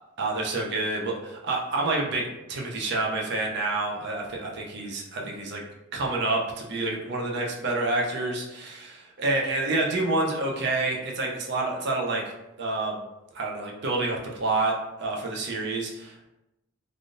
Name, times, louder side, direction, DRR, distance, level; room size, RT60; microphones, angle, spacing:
voice 1, 0.2-5.6 5.9-12.2 12.6-13.0 13.3-16.3, right 2 dB, 55° right, -1 dB, 0.5 m, -28 dB
3.4 x 2.4 x 2.5 m, 0.94 s
head